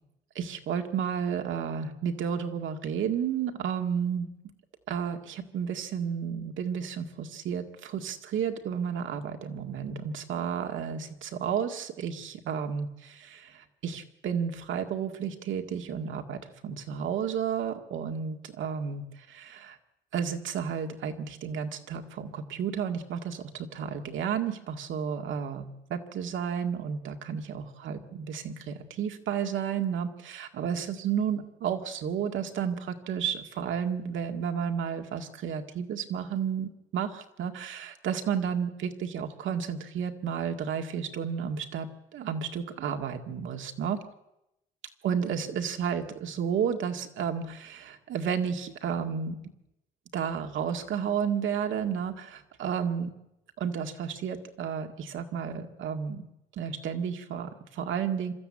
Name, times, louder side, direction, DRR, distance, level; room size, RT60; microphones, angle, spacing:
voice 1, 0.4-4.3 4.9-19.8 20.1-44.0 45.0-49.4 50.1-53.1 53.6-56.2 56.5-58.3, right 7 dB, 75° right, 5 dB, 2.0 m, -32 dB
26.0 x 13.0 x 8.7 m, 0.88 s
cardioid pair, 90°, 20 cm